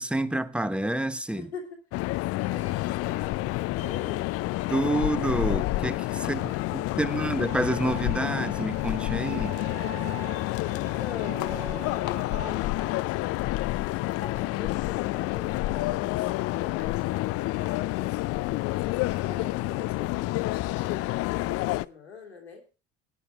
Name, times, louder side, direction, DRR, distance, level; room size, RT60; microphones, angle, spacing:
voice 1, 0.0-1.5 4.7-6.4 6.7-9.5, right 1 dB, 5° right, 1.1 m, -28 dB
voice 2, 1.4-4.3 6.2-7.1 10.6-13.3 14.0-22.6, left 5 dB, 90° left, 2.5 m, -43 dB
sound 1, 1.9-21.9, left 18 dB, 50° left, 0.5 m, -29 dB
Bowed string instrument, 7.5-12.5, right 15 dB, 90° right, 0.8 m, -44 dB
17.5 x 9.7 x 3.5 m
figure-of-eight pair, 60°, 31 cm